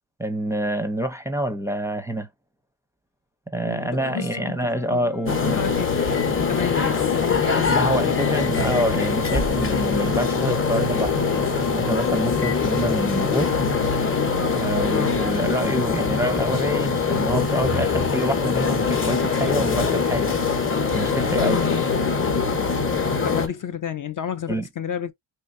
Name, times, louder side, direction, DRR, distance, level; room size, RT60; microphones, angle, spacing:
voice 1, 0.2-2.3 3.5-5.6 7.6-13.5 14.5-20.3 20.9-21.6 24.5-24.7, equal, 5° right, 0.6 m, -27 dB
voice 2, 3.6-4.5 4.9-5.1 5.5-6.0 6.4-8.4 14.9-15.1 21.4-21.9 23.2-25.1, left 9 dB, 45° left, 0.5 m, -30 dB
sound 1, 3.8-9.6 10.3-15.8, left 10 dB, 90° left, 1.4 m, -38 dB
sound 2, 5.3-23.5, left 5 dB, 25° left, 0.9 m, -23 dB
sound 3, 6.1-6.3 7.6-7.8 8.2-8.9 9.2-9.5 10.3-10.4 12.4-12.7, left 7 dB, 65° left, 1.0 m, -36 dB
4.4 x 3.3 x 2.5 m
cardioid pair, 130°, 47 cm